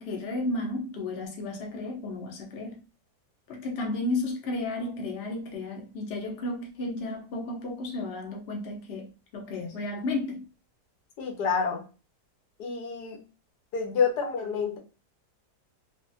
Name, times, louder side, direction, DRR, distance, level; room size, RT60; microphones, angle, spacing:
voice 1, 0.0-2.8 3.5-9.1 9.3-10.4, left 2 dB, 50° left, 0.9 m, -33 dB
voice 2, 11.2-11.8 12.6-13.2 13.7-14.8, left 5 dB, 75° left, 1.4 m, -28 dB
3.4 x 2.0 x 2.6 m
omnidirectional pair, 1.7 m